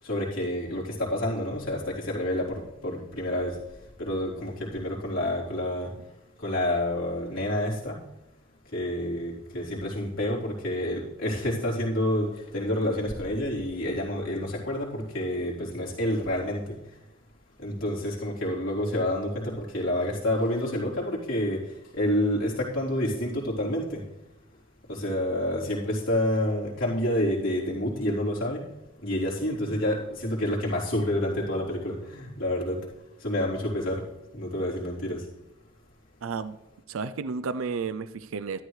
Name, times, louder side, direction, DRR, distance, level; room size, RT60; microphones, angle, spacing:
voice 1, 0.0-3.6 4.0-6.0 6.4-8.0 8.7-16.8 17.6-24.1 24.9-28.7 29.0-32.9 33.2-34.1 34.3-35.3, left 1 dB, 70° left, -5 dB, 3.6 m, -28 dB
voice 2, 36.2-36.6 36.9-38.6, right 5 dB, 70° right, 12 dB, 0.5 m, -32 dB
13.0 x 12.5 x 3.2 m, 0.93 s
head